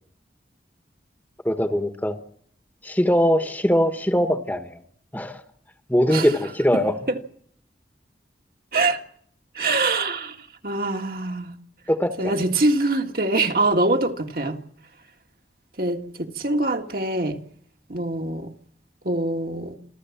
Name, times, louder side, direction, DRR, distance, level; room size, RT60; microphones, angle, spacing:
voice 1, 1.4-2.2 2.8-4.8 5.1-5.4 5.9-6.9 11.9-12.3, equal, 10° left, 1.3 m, -21 dB
voice 2, 9.5-11.5 12.2-14.6 15.8-17.4 17.9-18.5 19.0-19.8, right 2 dB, 55° right, 1.8 m, -24 dB
28.0 x 13.5 x 7.3 m
head